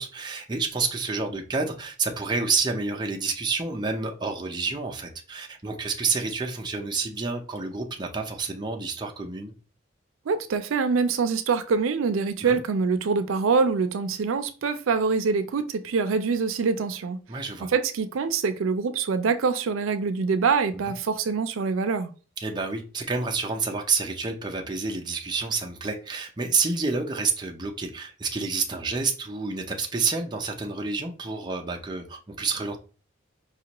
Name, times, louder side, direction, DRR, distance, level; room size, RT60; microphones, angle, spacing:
voice 1, 0.0-9.5 12.4-12.6 17.3-17.7 22.4-32.8, right 4 dB, 20° right, 0.5 m, -29 dB
voice 2, 10.3-17.2 17.6-22.1, right 5 dB, 85° right, 0.4 m, -25 dB
5.1 x 2.4 x 2.9 m
head